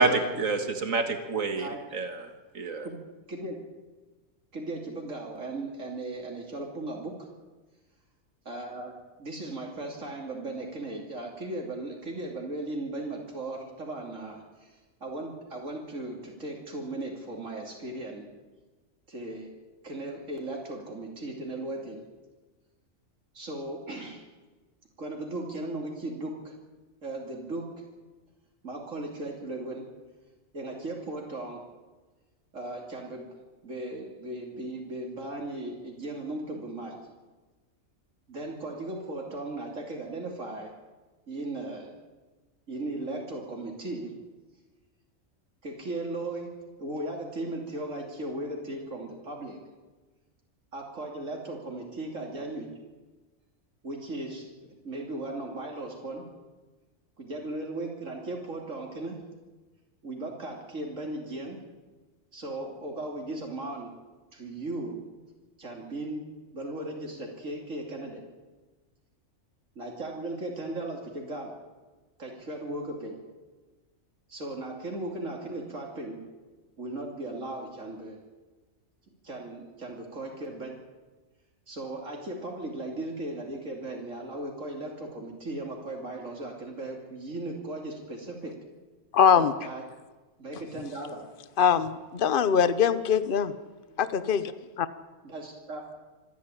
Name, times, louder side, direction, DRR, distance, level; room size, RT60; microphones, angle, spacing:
voice 1, 0.0-1.7 1.9-2.2 2.6-2.9, right 3 dB, 90° right, 6 dB, 2.1 m, -26 dB
voice 2, 3.3-3.6 4.5-7.2 8.4-8.9 9.2-14.7 15.0-18.2 19.1-19.5 19.8-22.0 23.3-24.2 25.0-26.5 27.0-27.7 28.6-29.9 30.5-31.6 32.5-33.3 33.6-37.0 38.3-40.7 41.3-41.9 42.7-44.1 45.6-46.5 46.8-49.6 50.7-52.7 53.8-56.2 57.2-59.2 60.0-61.6 62.3-63.9 64.3-65.0 65.6-66.2 66.5-68.2 69.7-71.6 72.2-73.2 74.3-76.2 76.8-78.2 79.2-80.8 81.7-88.6 89.3-89.9 90.4-91.3 95.2-95.9, right 2 dB, 75° right, 0 dB, 3.2 m, -37 dB
voice 3, 89.1-89.5 91.6-93.5 94.0-94.5 94.8-94.9, left 7 dB, 45° left, 13 dB, 1.1 m, -22 dB
26.0 x 10.5 x 9.9 m, 1.2 s
omnidirectional pair, 1.4 m